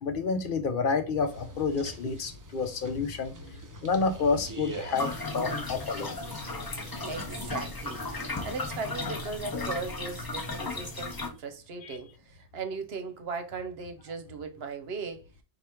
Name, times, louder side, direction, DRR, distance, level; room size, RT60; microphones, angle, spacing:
voice 1, 0.0-3.3 3.8-6.2 11.8-12.0, left 4 dB, 60° left, 0.7 m, -29 dB
sound 1, 1.2-8.6, right 2 dB, 25° right, 0.4 m, -45 dB
sound 2, 5.0-11.3, left 3 dB, 30° left, 0.5 m, -35 dB
voice 2, 6.8-15.2, right 4 dB, 70° right, 0.9 m, -38 dB
4.8 x 2.5 x 4.3 m
omnidirectional pair, 1.1 m